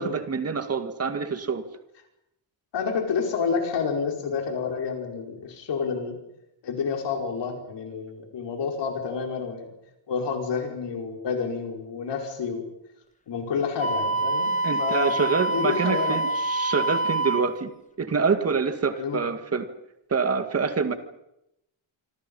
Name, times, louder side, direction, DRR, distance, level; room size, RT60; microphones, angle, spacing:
voice 1, 0.0-1.6 14.6-17.7 18.0-19.7 20.1-20.9, right 5 dB, 30° right, 8 dB, 2.0 m, -26 dB
voice 2, 2.7-6.2 6.6-9.7 10.1-12.6 13.3-14.5 14.8-15.2 15.5-16.2 18.9-19.2, left 5 dB, 60° left, 2 dB, 5.4 m, -29 dB
Wind instrument woodwind instrument, 13.8-17.5, right 2 dB, 15° left, 1.9 m, -26 dB
26.5 x 26.0 x 5.6 m, 0.84 s
wide cardioid pair, 175°, 47 cm